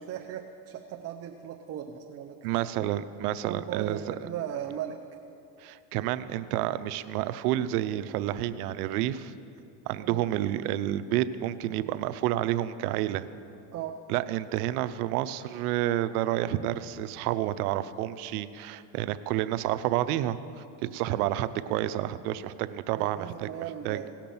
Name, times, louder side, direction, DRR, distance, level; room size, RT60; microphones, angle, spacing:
voice 1, 0.0-2.4 3.4-5.0 10.0-10.2 13.7-14.0 23.0-24.1, right 10 dB, 35° right, 3 dB, 0.6 m, -37 dB
voice 2, 2.4-4.1 5.6-9.3 9.9-13.3 14.1-20.4 20.8-23.5 23.8-24.0, right 13 dB, 85° right, 13 dB, 0.7 m, -29 dB
17.5 x 5.9 x 7.0 m, 2.7 s
supercardioid pair, 120°, 44 cm